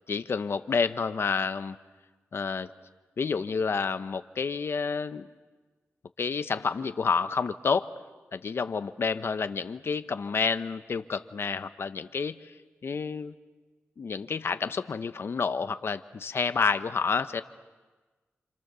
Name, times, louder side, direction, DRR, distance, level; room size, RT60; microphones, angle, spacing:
voice 1, 0.1-1.8 2.3-2.7 3.2-5.3 6.2-7.9 8.3-12.4 12.8-13.3 14.0-17.4, left 5 dB, 60° left, 11 dB, 1.0 m, -29 dB
29.5 x 27.0 x 6.9 m, 1.3 s
wide cardioid pair, 100°, 5 cm